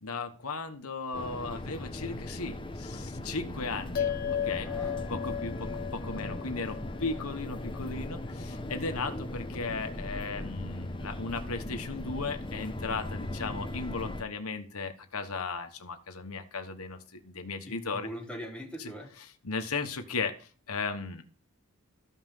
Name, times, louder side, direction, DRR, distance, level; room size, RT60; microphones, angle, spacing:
voice 1, 0.0-4.1 4.4-4.7 5.1-18.1 18.8-21.2, left 4 dB, 85° left, 6 dB, 1.3 m, -36 dB
sound 1, 1.1-14.2, left 1 dB, 25° left, 1.0 m, -38 dB
sound 2, 3.9-8.6, left 9 dB, 40° left, 0.4 m, -36 dB
voice 2, 4.6-5.4 17.7-19.1, equal, 5° left, 1 dB, 1.4 m, -42 dB
13.5 x 5.7 x 5.6 m, 0.40 s
head